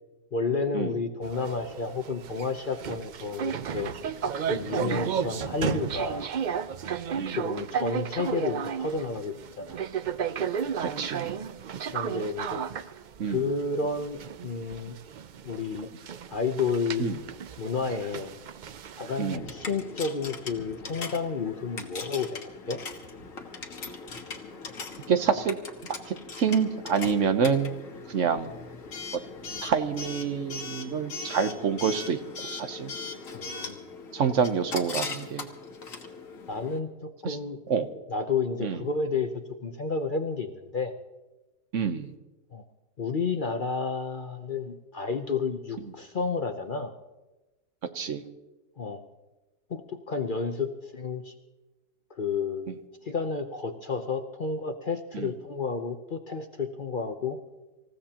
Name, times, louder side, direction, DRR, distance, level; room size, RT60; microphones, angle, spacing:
voice 1, 0.3-3.9 4.5-6.3 7.1-9.8 11.9-12.6 13.3-15.0 15.4-15.9 16.3-17.1 17.6-18.3 19.0-22.3 22.7-22.8 33.3-33.8 36.5-37.6 38.1-39.3 39.6-40.9 42.5-42.6 43.0-46.9 48.8-49.0 49.7-51.3 52.1-52.7 53.0-57.4, left 4 dB, 45° left, 6 dB, 0.8 m, -31 dB
sound 1, 1.2-19.4, right 7 dB, 90° right, 0.4 m, -33 dB
voice 2, 10.8-11.3 13.2-13.4 17.0-17.2 19.2-19.4 25.1-25.5 26.1-27.7 28.1-28.6 29.6-32.2 32.6-32.9 34.1-35.5 37.2-37.4 37.7-37.9 38.6-38.8 41.7-42.1 47.9-48.2 55.1-55.3, right 6 dB, 60° right, 9 dB, 1.2 m, -27 dB
Coin (dropping) / Alarm, 19.3-36.8, left 4 dB, 65° left, 1.7 m, -40 dB
26.5 x 15.5 x 2.9 m, 1.1 s
omnidirectional pair, 1.5 m